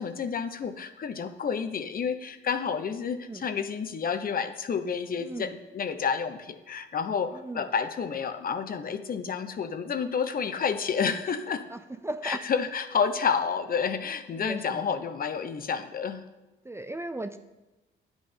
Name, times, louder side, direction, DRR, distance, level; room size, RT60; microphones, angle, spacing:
voice 1, 0.0-11.6 12.2-16.3, left 6 dB, 45° left, 9 dB, 0.9 m, -30 dB
voice 2, 5.2-5.5 7.3-7.7 11.7-12.4 14.3-14.9 16.6-17.4, right 2 dB, 15° right, 10 dB, 0.5 m, -37 dB
10.0 x 8.2 x 5.5 m, 1.1 s
cardioid pair, 90°, 20 cm